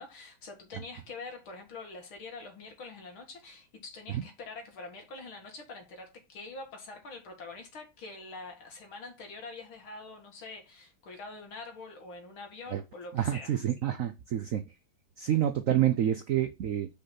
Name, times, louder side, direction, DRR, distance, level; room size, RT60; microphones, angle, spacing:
voice 1, 0.0-13.6, left 3 dB, 80° left, 2.9 m, -45 dB
voice 2, 13.1-14.6 15.2-16.9, right 11 dB, 75° right, 0.7 m, -28 dB
5.6 x 5.2 x 5.9 m
omnidirectional pair, 2.2 m